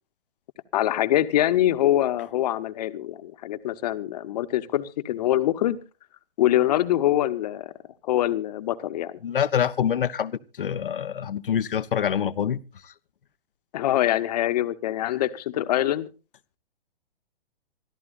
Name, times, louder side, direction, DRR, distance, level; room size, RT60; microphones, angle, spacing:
voice 1, 0.7-5.8 6.4-7.7 8.0-9.2 13.7-16.1, left 13 dB, 40° left, 1.1 m, -24 dB
voice 2, 9.2-12.6, left 8 dB, 60° left, 0.8 m, -25 dB
26.0 x 13.5 x 2.5 m
figure-of-eight pair, 115°, 30 cm